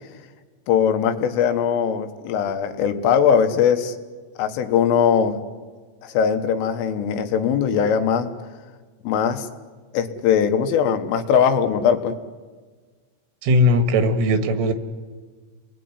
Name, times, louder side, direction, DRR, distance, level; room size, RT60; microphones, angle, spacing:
voice 1, 0.7-4.0 4.4-5.4 6.0-8.3 9.0-9.5 9.9-12.1, left 7 dB, 85° left, 8 dB, 4.1 m, -20 dB
voice 2, 13.4-14.7, left 1 dB, 90° right, 9 dB, 4.2 m, -18 dB
30.0 x 20.5 x 9.7 m, 1.4 s
omnidirectional pair, 5.7 m